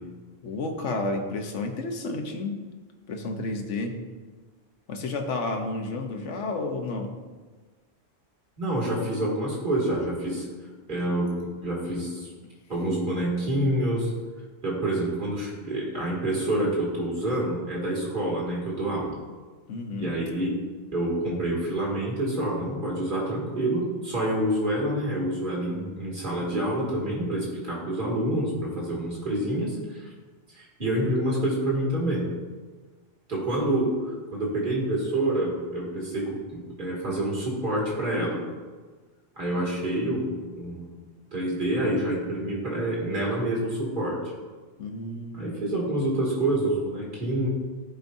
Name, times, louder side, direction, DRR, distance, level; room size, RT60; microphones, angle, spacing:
voice 1, 0.4-2.6 3.1-4.0 4.9-7.2 10.9-11.0 19.7-20.1 44.8-45.6, left 2 dB, 85° left, 4 dB, 1.3 m, -31 dB
voice 2, 8.6-10.4 10.9-11.3 11.6-12.3 12.7-14.1 14.6-19.2 20.0-20.5 20.9-30.1 30.5-32.3 33.3-38.4 39.4-40.9 41.3-44.2 45.3-47.5, right 1 dB, 45° right, -5 dB, 2.3 m, -27 dB
15.0 x 5.2 x 2.7 m, 1.4 s
omnidirectional pair, 1.2 m